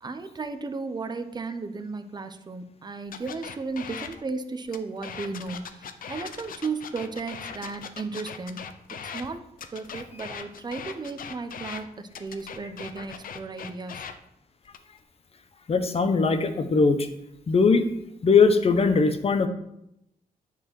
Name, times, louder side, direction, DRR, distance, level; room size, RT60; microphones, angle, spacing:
voice 1, 0.0-8.7 9.1-9.4 9.7-14.0, right 4 dB, 30° right, 9 dB, 0.9 m, -35 dB
sound 1, 3.1-4.2 4.7-9.3 9.6-11.8 12.1-14.1 14.7-15.0, left 7 dB, 70° left, 0.9 m, -39 dB
voice 2, 15.7-17.1 17.5-17.8 18.2-19.5, left 4 dB, 40° left, 8 dB, 1.1 m, -20 dB
10.5 x 4.5 x 7.6 m, 0.80 s
wide cardioid pair, 125°, 15 cm